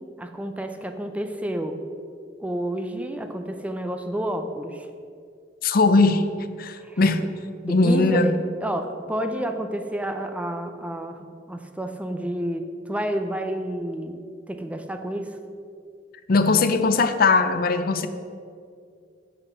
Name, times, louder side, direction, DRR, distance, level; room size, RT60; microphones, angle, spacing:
voice 1, 0.2-1.8 2.4-4.9 6.8-7.0 7.7-14.2 14.5-15.4, right 1 dB, 10° right, 6 dB, 0.5 m, -30 dB
voice 2, 5.6-6.2 6.6-7.2 7.6-8.3 16.3-18.1, left 3 dB, 55° left, 10 dB, 0.5 m, -19 dB
8.1 x 5.7 x 6.9 m, 2.3 s
head